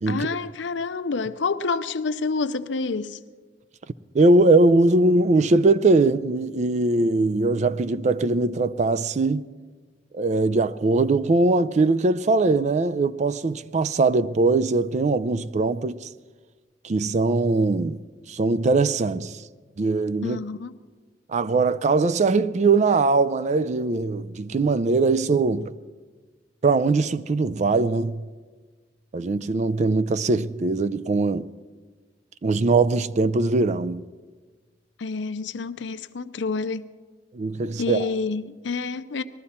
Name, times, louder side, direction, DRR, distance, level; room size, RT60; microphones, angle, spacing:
voice 1, 0.1-3.2 20.2-20.8 35.0-36.8 37.6-39.2, left 4 dB, 90° left, 0.6 m, -28 dB
voice 2, 4.1-9.5 10.1-16.1 16.8-18.0 18.3-19.4 19.8-20.4 21.3-25.7 26.6-28.3 29.1-31.5 32.4-34.0 37.3-38.1, right 3 dB, 40° right, 0.4 m, -21 dB
20.0 x 13.0 x 4.3 m
head